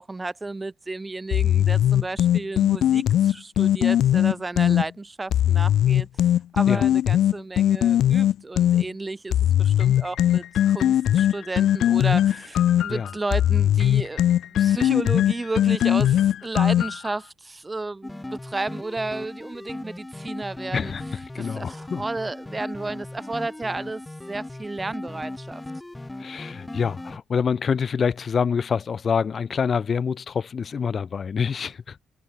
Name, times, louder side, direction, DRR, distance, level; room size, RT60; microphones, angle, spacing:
voice 1, 0.0-6.1 6.5-14.2 14.5-20.9 21.4-24.0 24.3-25.6, right 2 dB, 20° right, 3.4 m, -32 dB
sound 1, 1.3-4.8 5.3-8.8 9.3-17.1, left 11 dB, 75° left, 0.5 m, -20 dB
sound 2, 18.0-27.2, left 2 dB, 10° left, 6.6 m, -38 dB
voice 2, 20.7-21.0 21.3-22.0 26.2-32.0, left 6 dB, 45° left, 6.5 m, -26 dB
cardioid pair, 90°, 0 cm